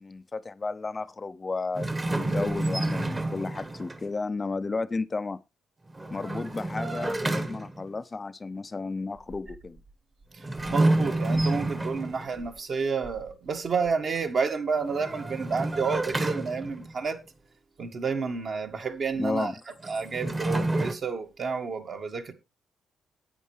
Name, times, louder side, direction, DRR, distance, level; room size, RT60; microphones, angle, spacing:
voice 1, 0.0-1.9 2.2-5.4 6.1-9.8 19.2-19.5, left 3 dB, 25° left, 0.5 m, -33 dB
sound 1, 1.8-4.1 5.9-7.9 10.4-12.4 14.8-17.0 19.8-20.9, right 2 dB, 20° right, 1.2 m, -29 dB
voice 2, 10.7-17.2 17.8-19.5 19.8-22.3, right 5 dB, 50° right, 1.7 m, -30 dB
11.0 x 8.6 x 3.3 m
cardioid pair, 90°, 0 cm